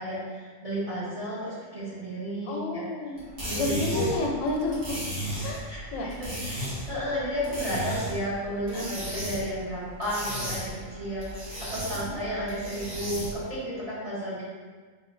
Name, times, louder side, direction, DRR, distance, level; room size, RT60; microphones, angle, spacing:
voice 1, 0.0-2.8 3.4-4.1 5.7-5.8 6.1-14.4, equal, 30° right, -11 dB, 1.0 m, -33 dB
voice 2, 2.5-3.2 3.5-5.0 5.4-6.1 8.7-8.9 12.0-12.2, left 2 dB, 90° left, 0 dB, 1.0 m, -30 dB
sound 1, 3.2-13.5, equal, 50° right, 1.4 m, -35 dB
3.6 x 2.8 x 2.5 m, 1.4 s
omnidirectional pair, 1.4 m